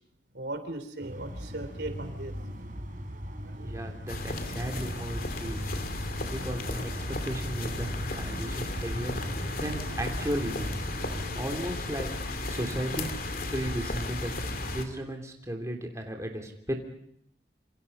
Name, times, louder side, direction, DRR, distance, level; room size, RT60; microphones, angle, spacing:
voice 1, 0.3-2.3 3.4-3.8, right 2 dB, 70° right, 8 dB, 3.5 m, -38 dB
sound 1, 1.0-11.4, equal, 50° right, 4.5 m, -39 dB
voice 2, 3.6-5.7 6.3-10.8 11.3-13.1 13.5-14.3 14.7-16.7, right 1 dB, 20° right, 2 dB, 3.2 m, -35 dB
sound 2, 4.1-14.8, left 2 dB, 55° left, 2.8 m, -34 dB
27.5 x 27.0 x 5.5 m, 0.71 s
head